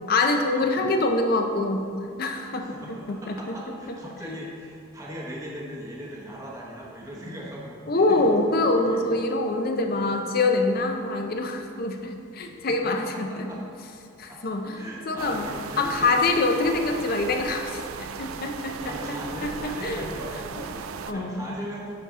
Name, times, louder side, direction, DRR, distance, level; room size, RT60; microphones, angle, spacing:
voice 1, 0.1-1.8 2.2-3.6 4.2-4.4 7.9-13.5 14.2-15.4 15.8-17.8 18.2-19.2 19.4-20.1 20.6-20.7 21.1-21.6, left 2 dB, 45° left, 4 dB, 0.5 m, -25 dB
voice 2, 0.6-1.0 2.6-8.3 8.6-9.2 13.0-13.6 14.3-16.2 16.5-16.9 18.8-21.9, equal, 15° right, -4 dB, 0.8 m, -39 dB
sound 1, 15.2-21.1, right 6 dB, 80° right, 0.4 m, -37 dB
10.5 x 4.1 x 3.6 m, 2.4 s
head